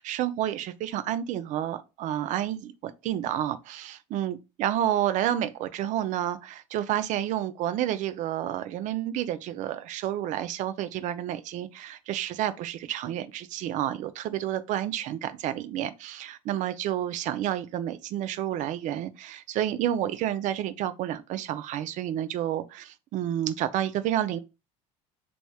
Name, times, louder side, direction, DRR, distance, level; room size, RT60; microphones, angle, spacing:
voice 1, 0.0-24.4, right 11 dB, 55° right, 0.4 m, -30 dB
3.0 x 2.9 x 2.3 m
supercardioid pair, 95°, 16 cm